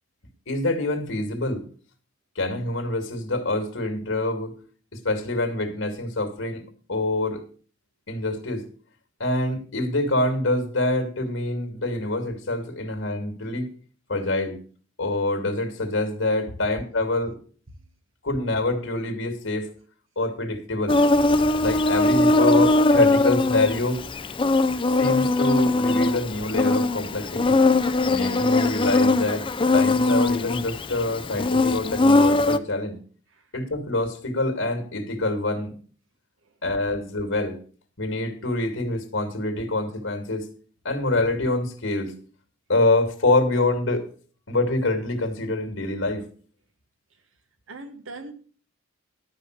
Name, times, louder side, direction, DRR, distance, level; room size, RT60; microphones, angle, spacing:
voice 1, 0.5-1.6 2.4-4.5 4.9-6.6 6.9-7.4 8.1-8.7 9.2-13.7 14.1-14.6 15.0-17.4 18.2-19.7 20.2-21.0 21.6-24.0 24.9-27.6 28.1-29.5 29.7-33.0 33.5-35.7 36.6-37.6 38.0-40.5 40.8-42.1 42.7-44.1 44.5-46.3, left 2 dB, 75° left, 2.5 m, -26 dB
Insect, 20.9-32.6, left 2 dB, 25° left, 0.5 m, -21 dB
voice 2, 47.7-48.3, right 2 dB, 85° right, 1.5 m, -41 dB
12.5 x 5.6 x 6.6 m
head